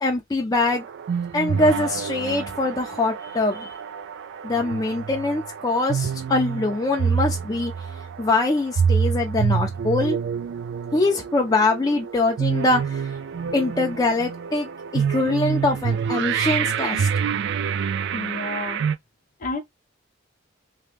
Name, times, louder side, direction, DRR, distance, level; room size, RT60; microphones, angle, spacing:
voice 1, 0.0-0.8 1.3-3.7 4.4-7.7 8.2-10.2 10.9-13.0 13.5-17.1, left 2 dB, 20° left, 0.5 m, -23 dB
sound 1, 0.6-19.0, right 7 dB, 60° right, 0.3 m, -27 dB
voice 2, 18.1-18.9 19.4-19.6, left 3 dB, 45° left, 0.8 m, -30 dB
2.9 x 2.2 x 3.3 m
head